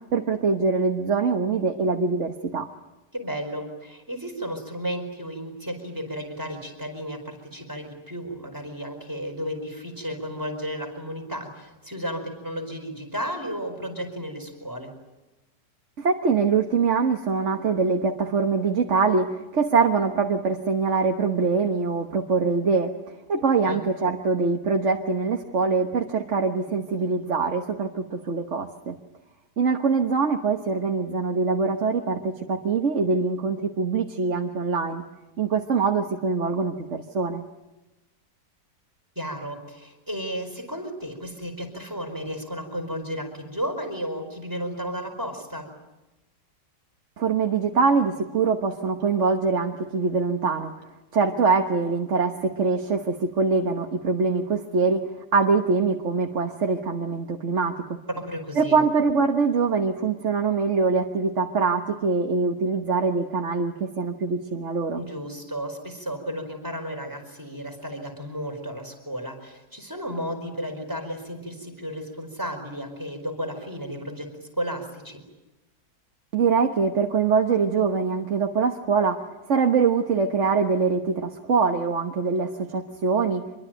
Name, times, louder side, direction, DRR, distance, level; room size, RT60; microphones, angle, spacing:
voice 1, 0.1-2.7 16.0-22.9 23.3-29.0 29.6-35.0 35.4-37.4 47.2-50.7 51.1-58.0 58.6-65.0 76.3-79.2 79.5-83.4, right 4 dB, 45° right, 4 dB, 1.5 m, -23 dB
voice 2, 3.1-14.9 23.3-23.8 39.1-45.7 58.2-58.8 64.9-75.2, equal, 10° right, 4 dB, 4.7 m, -33 dB
26.0 x 22.5 x 9.0 m, 1.1 s
omnidirectional pair, 1.8 m